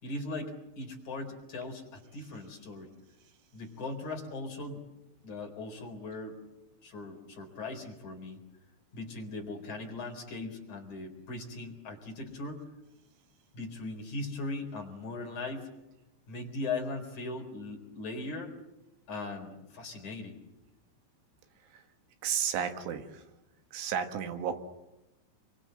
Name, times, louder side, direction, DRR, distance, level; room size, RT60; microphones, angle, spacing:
voice 1, 0.0-2.9 3.5-4.8 5.2-6.4 6.8-8.4 8.9-12.6 13.5-15.7 16.3-18.5 19.1-20.4, left 2 dB, 40° left, 1 dB, 5.2 m, -39 dB
voice 2, 22.2-23.2 23.7-24.6, right 8 dB, 80° right, 7 dB, 4.1 m, -32 dB
29.5 x 24.0 x 7.7 m, 0.95 s
omnidirectional pair, 5.5 m